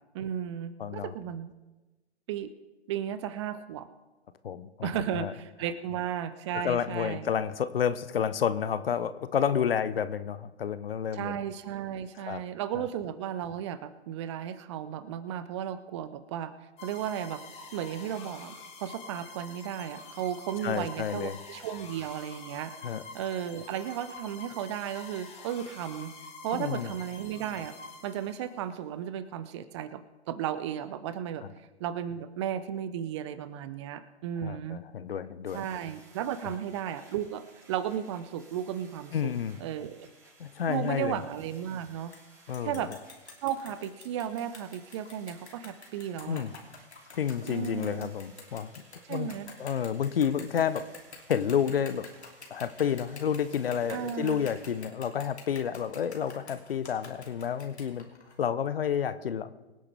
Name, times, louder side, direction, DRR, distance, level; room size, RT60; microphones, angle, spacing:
voice 1, 0.1-1.5 2.3-2.5 2.9-3.9 4.8-7.3 11.1-16.5 16.8-17.4 17.7-22.7 23.1-26.1 26.4-27.7 28.0-30.0 30.3-31.4 31.8-34.8 35.5-39.3 39.6-40.1 40.7-42.1 42.6-42.9 43.4-46.4 47.4-48.1 49.1-49.6 53.9-54.5, right 10 dB, 25° right, 14 dB, 0.6 m, -34 dB
voice 2, 0.8-1.1 4.4-5.3 6.5-11.3 12.2-12.4 12.7-12.8 20.6-21.4 22.8-23.0 26.5-26.9 34.4-35.6 36.4-36.5 39.1-39.6 40.4-41.2 42.5-42.8 46.2-46.5 47.1-48.7 49.1-49.3 49.6-50.8 51.3-52.1 52.5-58.1 58.4-59.7, left 8 dB, 55° left, 14 dB, 0.9 m, -30 dB
sound 1, 16.8-28.6, left 3 dB, 20° left, 1.9 m, -47 dB
sound 2, 35.4-54.9, right 3 dB, 10° right, 3.3 m, -59 dB
sound 3, 42.1-42.2 42.5-58.4, left 4 dB, 70° left, 3.0 m, -48 dB
24.5 x 9.7 x 3.4 m, 1.1 s
figure-of-eight pair, 120°, 34 cm